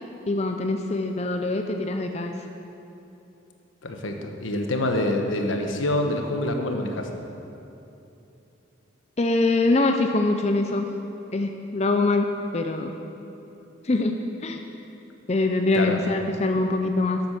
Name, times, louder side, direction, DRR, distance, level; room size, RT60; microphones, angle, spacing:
voice 1, 0.3-2.3 9.2-10.9 11.3-13.0 13.8-14.6 15.3-17.2, left 2 dB, 35° left, 4 dB, 0.5 m, -24 dB
voice 2, 3.8-7.1 15.7-16.0, left 1 dB, 85° left, 4 dB, 1.2 m, -26 dB
11.5 x 7.8 x 6.7 m, 2.9 s
head